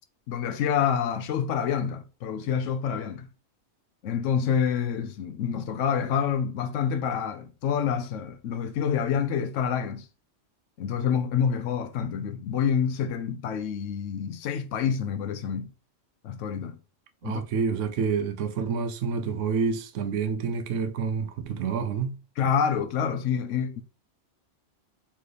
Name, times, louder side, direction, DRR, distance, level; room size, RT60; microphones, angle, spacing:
voice 1, 0.3-3.3 4.0-10.1 10.8-15.7 16.2-16.8 17.2-17.4 22.4-23.8, left 7 dB, 85° left, 1.0 m, -27 dB
voice 2, 17.2-22.2, right 6 dB, 85° right, 1.0 m, -28 dB
4.1 x 3.2 x 3.2 m
omnidirectional pair, 1.2 m